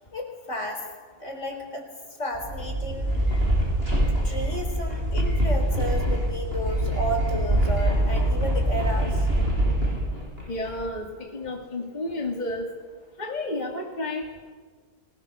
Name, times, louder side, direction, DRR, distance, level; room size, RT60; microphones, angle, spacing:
voice 1, 0.1-0.9 1.2-1.9 2.2-3.2 4.2-9.3, equal, 50° left, 4 dB, 4.3 m, -32 dB
sound 1, 2.3-10.9, right 1 dB, 40° right, 7.3 m, -24 dB
voice 2, 10.5-12.7 13.2-14.2, left 2 dB, 30° left, 1 dB, 2.4 m, -31 dB
29.0 x 20.0 x 6.7 m, 1.5 s
omnidirectional pair, 1.6 m